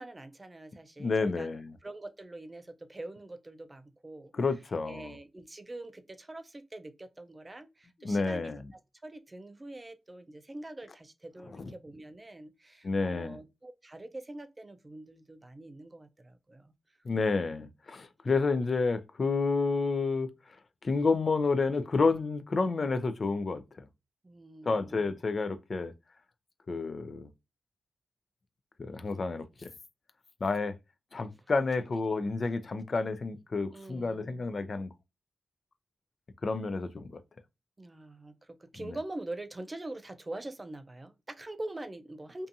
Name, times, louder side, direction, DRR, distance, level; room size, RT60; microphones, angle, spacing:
voice 1, 0.0-1.5 1.8-4.3 4.8-16.7 24.2-25.2 33.7-34.5 37.8-42.5, right 2 dB, 25° right, 0.4 m, -44 dB
voice 2, 1.0-1.7 4.3-5.1 8.0-8.6 11.6-11.7 12.8-13.4 17.1-20.3 20.8-23.9 24.7-25.9 26.7-27.3 28.8-29.7 30.4-30.7 31.1-34.9 36.4-37.1 38.9-39.0, left 4 dB, 50° left, 0.3 m, -30 dB
2.6 x 2.3 x 2.5 m
cardioid pair, 70°, 0 cm